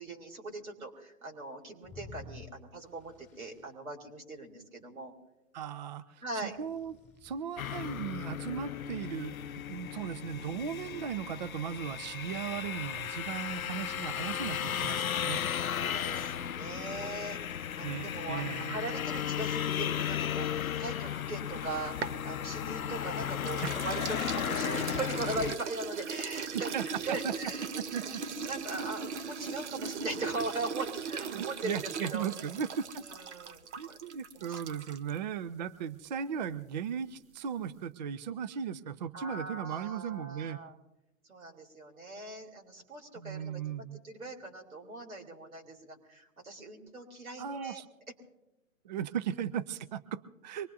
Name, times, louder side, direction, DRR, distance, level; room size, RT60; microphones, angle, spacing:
voice 1, 0.0-5.1 6.2-6.6 15.7-17.4 17.8-27.7 28.0-28.1 28.5-32.3 33.1-34.0 34.3-34.6 39.1-40.7 41.3-47.8, right 2 dB, 90° right, 0 dB, 3.8 m, -40 dB
sound 1, 1.8-3.7 6.5-8.5, left 4 dB, 5° left, 2.3 m, -52 dB
voice 2, 5.5-7.0 7.2-9.4 9.7-15.4 17.8-18.8 23.6-23.7 26.7-27.3 27.8-28.2 31.3-33.0 33.8-40.6 43.2-44.0 47.4-47.9 48.8-50.7, right 8 dB, 35° right, 14 dB, 0.5 m, -37 dB
sound 2, 7.6-25.6, left 9 dB, 90° left, 0.6 m, -35 dB
sound 3, 21.5-23.0 23.4-35.2, right 6 dB, 55° right, 1.0 m, -39 dB
24.0 x 20.5 x 2.8 m, 0.95 s
hypercardioid pair, 135°, 41 cm